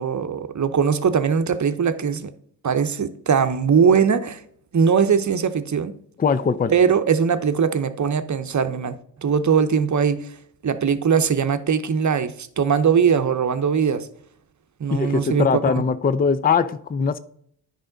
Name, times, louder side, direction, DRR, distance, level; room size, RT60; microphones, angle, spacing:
voice 1, 0.0-2.3 2.6-4.4 4.7-5.9 6.7-10.3 10.6-14.1 14.8-15.8, right 6 dB, 40° right, 0.8 m, -20 dB
voice 2, 6.2-6.7 14.9-17.2, left 5 dB, 20° left, 0.4 m, -21 dB
9.8 x 5.1 x 3.9 m
supercardioid pair, 45°, 47 cm